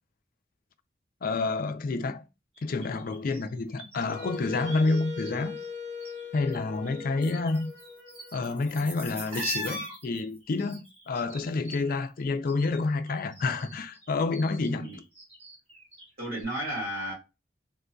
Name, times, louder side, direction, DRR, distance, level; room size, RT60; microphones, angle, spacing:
voice 1, 1.2-2.2 2.6-5.6 6.3-7.7 8.3-14.9, left 3 dB, 50° left, 0.4 m, -29 dB
sound 1, 2.6-5.3 5.6-6.6 6.8-12.8 13.1-16.1 16.4-16.5, right 1 dB, 35° right, 1.5 m, -42 dB
Wind instrument woodwind instrument, 4.1-9.0, left 5 dB, 80° right, 0.7 m, -41 dB
voice 2, 14.7-15.0 16.2-17.1, right 1 dB, 55° right, 1.9 m, -34 dB
3.6 x 2.6 x 2.2 m
head